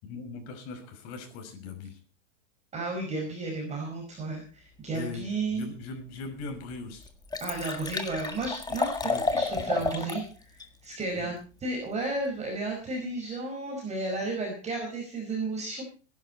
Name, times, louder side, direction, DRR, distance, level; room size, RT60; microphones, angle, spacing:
voice 1, 0.0-2.0 4.9-5.2 5.5-7.1 9.0-9.8 11.2-11.3, left 3 dB, 40° left, 6 dB, 5.8 m, -40 dB
voice 2, 2.7-5.7 7.4-8.9 9.3-11.3 11.6-15.8, right 2 dB, 15° right, 0 dB, 5.2 m, -33 dB
Liquid, 6.2-6.3 6.7-6.8 7.0-10.2 10.6-10.7, left 3 dB, 10° left, 1.7 m, -31 dB
21.0 x 11.0 x 4.3 m, 0.36 s
supercardioid pair, 140°, 38 cm